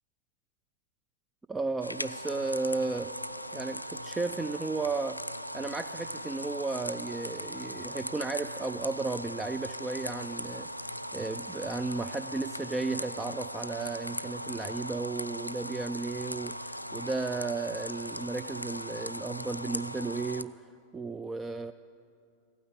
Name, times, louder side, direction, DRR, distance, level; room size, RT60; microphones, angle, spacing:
voice 1, 1.5-3.1 3.5-5.2 5.5-20.6 20.9-21.7, right 3 dB, 15° right, 11 dB, 0.3 m, -34 dB
sound 1, 1.8-20.4, equal, 90° left, 0.3 m, -39 dB
15.5 x 9.3 x 8.4 m, 2.4 s
figure-of-eight pair, 90°, 0 cm